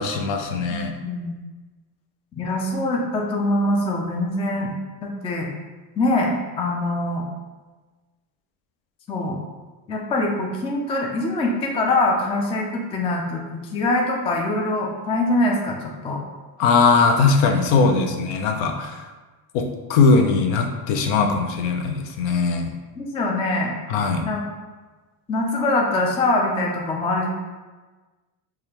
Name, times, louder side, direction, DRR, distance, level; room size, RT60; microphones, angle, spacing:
voice 1, 0.0-0.9 16.6-19.0 19.5-22.7 23.9-24.2, left 4 dB, 70° left, 4 dB, 0.7 m, -20 dB
voice 2, 0.7-1.4 2.4-4.7 5.0-5.5 6.0-7.3 9.1-9.4 9.9-13.4 13.7-16.2 17.8-18.0 21.1-21.3 23.0-23.7 24.2-24.4 25.3-27.3, left 2 dB, 15° left, 0 dB, 0.3 m, -23 dB
4.8 x 2.4 x 2.9 m, 1.3 s
supercardioid pair, 105°, 48 cm